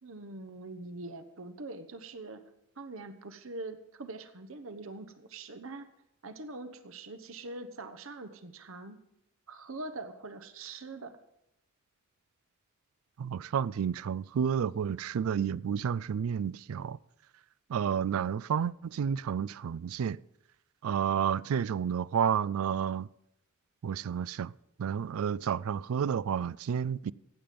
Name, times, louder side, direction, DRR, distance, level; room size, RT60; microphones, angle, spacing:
voice 1, 0.0-2.4 2.8-5.9 6.2-9.0 9.5-11.2, right 2 dB, 70° right, 1.0 m, -43 dB
voice 2, 13.2-17.0 17.7-20.2 20.8-23.1 23.8-24.5 24.8-27.1, right 8 dB, 85° right, 0.4 m, -30 dB
15.5 x 9.4 x 5.2 m
head